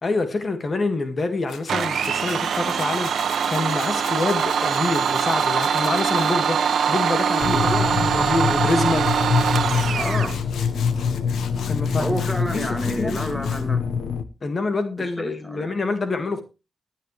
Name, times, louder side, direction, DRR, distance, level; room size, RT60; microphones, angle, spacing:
voice 1, 0.0-9.1 11.7-12.2 12.5-13.2 14.4-16.4, left 3 dB, 45° left, 2.0 m, -26 dB
Tools, 1.5-6.4 8.7-8.8 9.0-13.7, left 7 dB, 85° left, 1.5 m, -40 dB
Domestic sounds home sounds, 1.7-10.4, right 7 dB, 80° right, 1.2 m, -23 dB
sound 1, 7.4-14.2, left 6 dB, 70° left, 1.2 m, -25 dB
voice 2, 7.5-7.9 9.9-10.4 12.0-13.8 15.0-15.7, equal, ahead, 2.3 m, -29 dB
17.5 x 10.5 x 3.3 m
cardioid pair, 65°, 0 cm